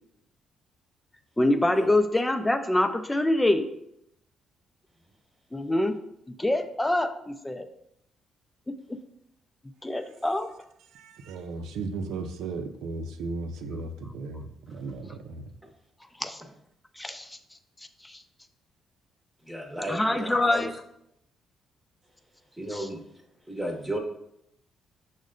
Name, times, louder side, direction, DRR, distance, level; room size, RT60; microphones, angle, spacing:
voice 1, 1.4-3.7 5.5-6.0 6.4-7.7 8.7-8.8 9.8-10.5 16.2-16.4 17.0-17.4 18.0-18.2 19.9-20.7 22.7-22.9, left 1 dB, 10° left, 8 dB, 0.4 m, -25 dB
voice 2, 10.9-15.5, right 3 dB, 90° right, 7 dB, 0.4 m, -36 dB
voice 3, 19.5-20.7 22.6-23.0 23.5-24.0, right 1 dB, 5° right, 2 dB, 0.8 m, -33 dB
6.1 x 2.2 x 3.7 m, 0.76 s
cardioid pair, 90°, 0 cm